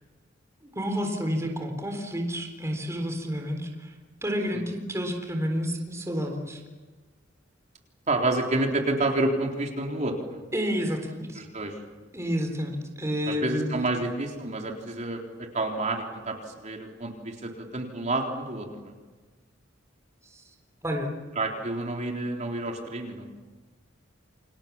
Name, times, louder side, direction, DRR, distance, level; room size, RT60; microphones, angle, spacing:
voice 1, 0.8-3.9 4.2-6.6 10.5-11.4 12.1-13.7 20.3-20.4 20.8-21.1, equal, 15° right, 3 dB, 3.8 m, -30 dB
voice 2, 8.1-10.4 11.4-11.7 13.3-18.9 21.4-23.3, right 2 dB, 40° right, 1 dB, 3.9 m, -29 dB
30.0 x 26.0 x 7.2 m, 1.3 s
head